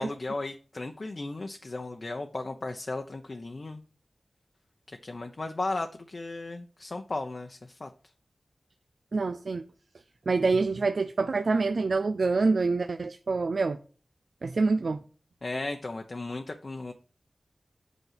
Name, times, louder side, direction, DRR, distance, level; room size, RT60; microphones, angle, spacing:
voice 1, 0.0-3.8 5.0-7.9 15.4-16.9, left 2 dB, 55° left, 0.9 m, -35 dB
voice 2, 9.1-9.6 10.3-13.8 14.4-15.0, right 3 dB, 75° right, 0.5 m, -26 dB
8.3 x 5.4 x 5.8 m
wide cardioid pair, 70°, 0 cm